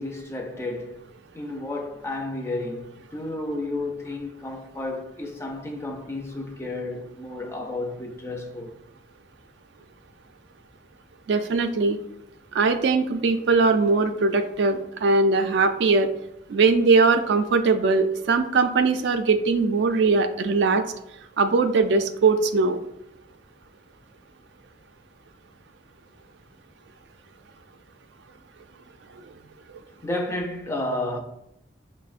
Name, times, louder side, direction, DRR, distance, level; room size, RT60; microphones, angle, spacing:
voice 1, 0.0-8.8 30.0-31.2, left 2 dB, 15° left, 0.3 m, -32 dB
voice 2, 11.3-12.0 12.5-16.1 16.5-20.8 21.4-22.8, right 4 dB, 70° right, 0.3 m, -20 dB
6.1 x 2.0 x 2.4 m
head